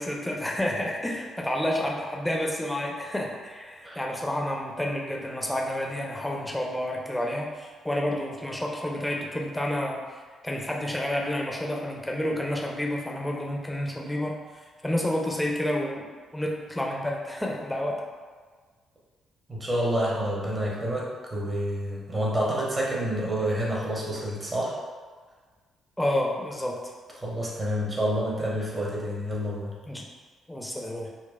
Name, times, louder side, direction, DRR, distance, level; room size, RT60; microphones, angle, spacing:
voice 1, 0.0-10.0 10.4-14.3 14.8-16.1 16.3-17.9 26.0-26.8 29.9-30.0 30.5-31.1, left 1 dB, 5° left, -1 dB, 0.6 m, -29 dB
voice 2, 19.5-24.8 27.2-29.8, equal, 25° right, -4 dB, 0.9 m, -28 dB
4.0 x 2.3 x 2.2 m, 1.5 s
figure-of-eight pair, 40°, 0 cm